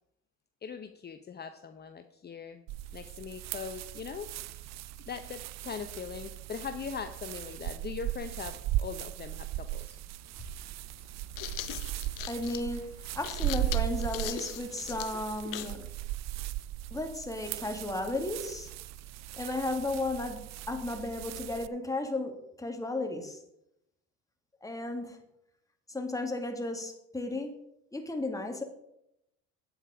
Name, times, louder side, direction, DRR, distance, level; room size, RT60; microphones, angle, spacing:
voice 1, 0.6-2.6 2.9-4.3 5.1-10.0, left 6 dB, 30° left, 7 dB, 0.8 m, -41 dB
sound 1, 2.7-21.7, right 15 dB, 50° right, 0.5 m, -38 dB
sound 2, 10.0-10.1 11.1-15.8, left 15 dB, 70° left, 0.8 m, -40 dB
voice 2, 12.3-12.9 13.1-15.8 16.9-18.7 19.3-23.4 24.6-25.2 25.9-27.6 27.9-28.6, left 2 dB, 10° left, 4 dB, 2.0 m, -34 dB
8.9 x 8.0 x 4.9 m, 0.80 s
hypercardioid pair, 75°, 34 cm